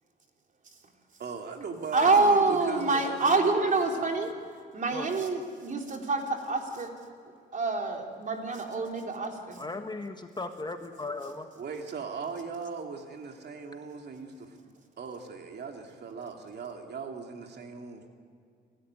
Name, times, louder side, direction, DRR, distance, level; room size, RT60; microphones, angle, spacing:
voice 1, 1.2-3.4 4.0-4.1 11.6-14.6 15.0-18.0, right 5 dB, 55° right, 3 dB, 2.6 m, -39 dB
voice 2, 1.9-4.3 4.7-6.9 7.5-9.6, right 3 dB, 40° right, 2 dB, 3.8 m, -26 dB
voice 3, 9.6-11.5, left 3 dB, 20° left, 6 dB, 1.6 m, -37 dB
29.0 x 13.0 x 9.6 m, 2.3 s
cardioid pair, 90°, 20 cm